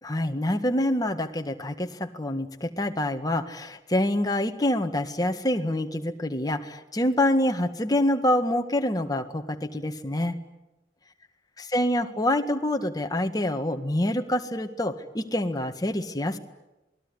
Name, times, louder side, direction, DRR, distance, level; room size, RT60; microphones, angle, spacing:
voice 1, 0.0-10.4 11.6-16.4, left 1 dB, 20° left, 6 dB, 1.8 m, -26 dB
27.5 x 20.5 x 9.9 m, 1.0 s
head